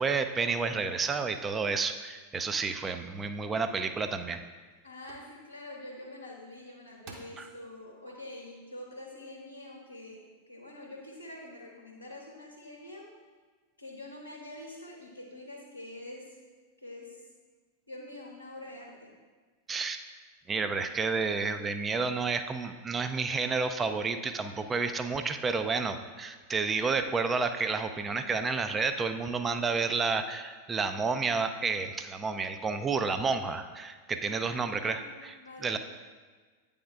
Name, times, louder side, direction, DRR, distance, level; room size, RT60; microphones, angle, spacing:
voice 1, 0.0-4.4 7.4-7.5 19.7-20.0 20.5-35.8, right 4 dB, 20° right, 8 dB, 0.4 m, -30 dB
sound 1, 3.7-3.8 4.4-4.7 5.1-5.3 6.5-6.6 7.0-7.5 8.1-8.2, right 3 dB, 40° right, 0.9 m, -49 dB
voice 2, 4.8-10.2 10.5-13.1 13.8-16.4 16.8-17.2 17.9-19.1 34.3-35.8, left 1 dB, 85° left, -2 dB, 0.8 m, -46 dB
9.3 x 3.5 x 3.4 m, 1.4 s
figure-of-eight pair, 90°, 0 cm